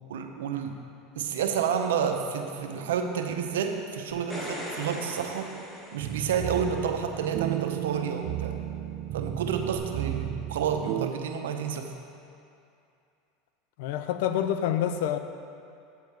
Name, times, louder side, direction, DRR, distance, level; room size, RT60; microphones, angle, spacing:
voice 1, 0.1-0.8 1.1-5.5 5.9-8.6 9.1-11.9, right 7 dB, 85° right, 4 dB, 0.8 m, -30 dB
sound 1, 4.1-6.7 9.7-9.8, equal, 20° left, 2.2 m, -39 dB
sound 2, 6.0-11.1, right 13 dB, 55° right, 0.4 m, -33 dB
voice 2, 13.8-15.2, left 10 dB, 75° left, 9 dB, 0.5 m, -27 dB
9.0 x 7.1 x 4.8 m, 2.5 s
supercardioid pair, 110°, 0 cm